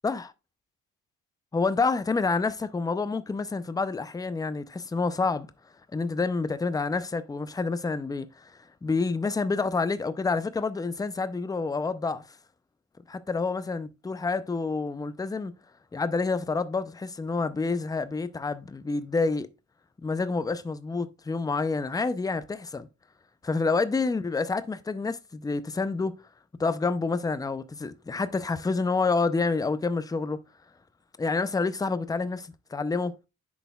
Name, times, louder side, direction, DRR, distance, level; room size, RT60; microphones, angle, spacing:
voice 1, 1.5-5.5 5.9-8.4 8.8-12.2 13.1-15.5 15.9-19.5 20.0-22.9 23.4-26.2 26.6-30.4 31.2-33.1, left 4 dB, 10° left, 0.5 m, -28 dB
10.5 x 4.1 x 2.3 m
cardioid pair, 90°, 30 cm